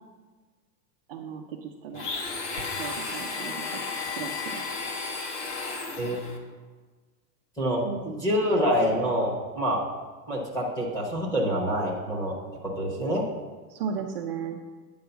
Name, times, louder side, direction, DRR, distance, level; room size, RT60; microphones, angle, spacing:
voice 1, 1.1-2.1 2.8-3.8 4.2-4.6 7.8-8.0 8.5-8.7 13.7-14.6, right 7 dB, 40° right, 0 dB, 0.4 m, -35 dB
Domestic sounds home sounds, 1.9-6.4, left 4 dB, 45° left, 1.2 m, -33 dB
voice 2, 6.0-6.3 7.6-9.8 10.3-12.4 12.6-13.2, equal, 5° left, -2 dB, 0.9 m, -26 dB
9.5 x 4.7 x 6.8 m, 1.4 s
supercardioid pair, 175°, 48 cm